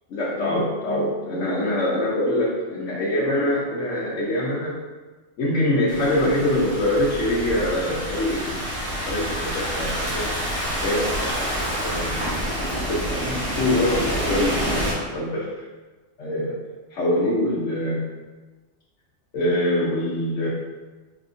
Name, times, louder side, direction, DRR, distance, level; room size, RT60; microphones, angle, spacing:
voice 1, 0.1-4.8 5.4-8.7 9.1-10.3 10.8-12.4 12.9-15.6 16.2-16.6 16.9-18.1 19.3-20.5, left 1 dB, 80° left, -6 dB, 1.1 m, -24 dB
Thunderstorm / Rain, 5.9-14.9, equal, 50° right, 1.4 m, -28 dB
4.9 x 3.4 x 2.6 m, 1.2 s
omnidirectional pair, 1.2 m